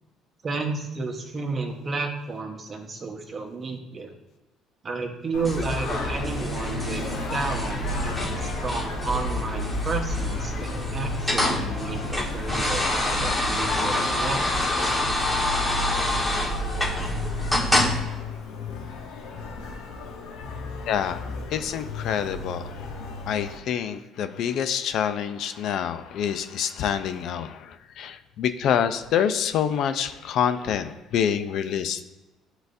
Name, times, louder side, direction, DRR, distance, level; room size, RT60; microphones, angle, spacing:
voice 1, 0.4-4.1 4.8-14.6, right 3 dB, 35° right, 3 dB, 1.1 m, -32 dB
Singing, 5.3-23.6, left 5 dB, 85° left, 1.0 m, -34 dB
sound 1, 5.4-18.0, left 1 dB, 5° left, 1.5 m, -27 dB
voice 2, 20.9-22.7 23.3-32.0, left 8 dB, 65° left, 10 dB, 0.5 m, -27 dB
10.5 x 3.9 x 2.6 m, 1.1 s
cardioid pair, 110°, 0 cm